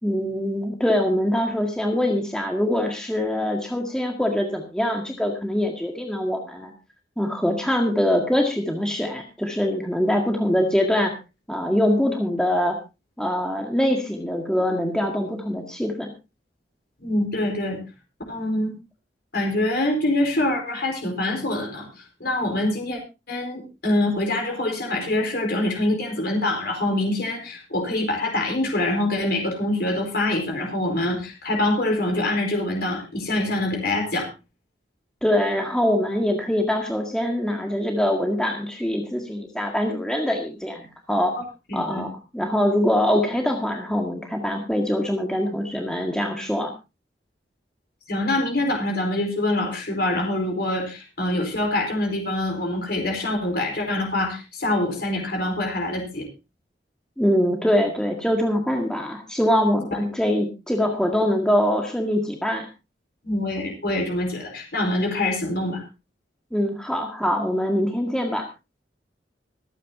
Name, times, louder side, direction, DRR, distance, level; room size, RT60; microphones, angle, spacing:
voice 1, 0.0-6.7 7.2-11.1 11.5-12.7 13.2-16.1 35.2-41.3 41.7-46.7 57.2-62.7 66.5-68.5, left 1 dB, 5° left, 1 dB, 1.8 m, -23 dB
voice 2, 17.0-17.8 18.3-18.7 19.3-23.0 23.3-34.3 41.7-42.0 48.1-56.3 63.2-65.8, left 1 dB, 60° left, 2 dB, 4.6 m, -25 dB
25.5 x 9.2 x 2.7 m, 0.28 s
head